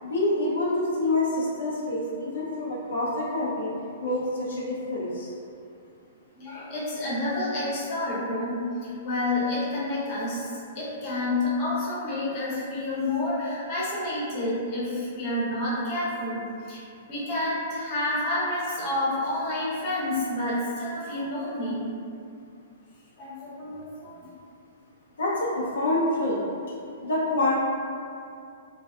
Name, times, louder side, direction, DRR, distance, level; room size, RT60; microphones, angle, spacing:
voice 1, 0.0-3.7 4.0-5.3 25.2-26.4 27.0-27.6, left 2 dB, 85° left, -6 dB, 0.5 m, -27 dB
voice 2, 6.4-10.5 10.7-16.8 17.1-21.9 23.2-24.3, left 1 dB, 40° left, -8 dB, 0.8 m, -29 dB
2.4 x 2.2 x 2.3 m, 2.5 s
hypercardioid pair, 140°, 0 cm